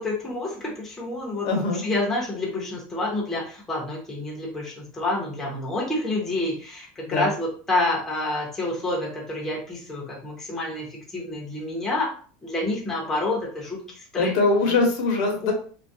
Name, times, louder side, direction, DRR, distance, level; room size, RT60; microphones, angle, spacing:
voice 1, 0.0-12.1 12.4-14.3 15.4-15.5, left 2 dB, 10° left, -4 dB, 0.6 m, -28 dB
voice 2, 1.4-1.8 7.1-7.3 14.2-15.5, left 3 dB, 55° left, 2 dB, 0.7 m, -22 dB
2.3 x 2.1 x 2.5 m, 0.43 s
supercardioid pair, 160°, 4 cm